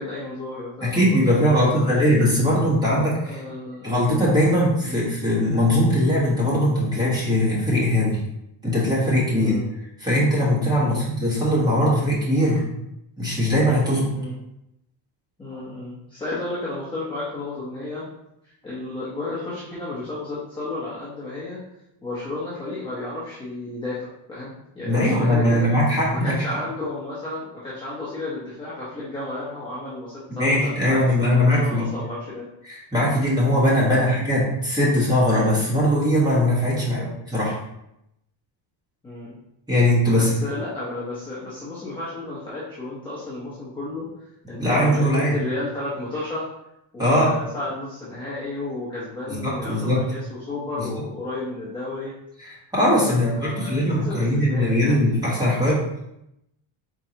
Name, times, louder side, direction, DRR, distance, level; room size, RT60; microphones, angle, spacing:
voice 1, 0.0-2.1 3.2-4.1 4.8-5.0 9.4-9.7 10.8-11.0 14.1-14.4 15.4-18.0 18.6-21.6 22.0-31.0 31.3-32.5 33.9-34.1 36.7-37.1 39.0-39.4 40.1-46.5 46.9-52.1 52.9-55.0, left 2 dB, 10° left, -9 dB, 0.8 m, -32 dB
voice 2, 0.8-3.4 3.8-8.2 8.6-9.6 10.0-12.6 13.2-14.1 24.8-26.3 30.4-31.8 32.6-37.0 37.3-37.6 39.7-40.3 44.6-45.4 47.0-47.3 49.3-50.0 50.8-50.9 52.4-55.8, equal, 10° right, -7 dB, 1.4 m, -20 dB
4.5 x 3.8 x 2.8 m, 0.82 s
cardioid pair, 175°, 49 cm